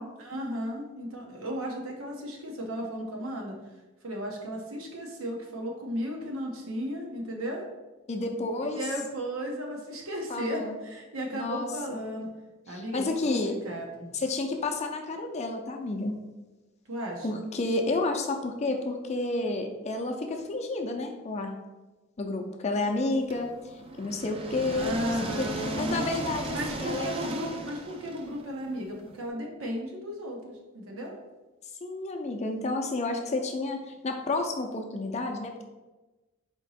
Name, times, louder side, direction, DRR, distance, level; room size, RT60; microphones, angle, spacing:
voice 1, 0.2-3.5 4.0-7.6 8.6-12.3 12.7-14.1 16.9-17.4 24.7-26.1 26.5-31.1, equal, 85° right, 0 dB, 0.9 m, -35 dB
voice 2, 8.1-8.8 10.3-10.8 11.3-12.0 12.7-13.5 14.1-16.2 17.2-21.5 22.2-23.5 24.0-25.5 25.8-27.3 31.8-35.6, left 2 dB, 30° left, 3 dB, 0.5 m, -30 dB
sound 1, 23.3-29.2, right 2 dB, 25° right, 0.4 m, -37 dB
4.4 x 2.9 x 4.1 m, 1.1 s
head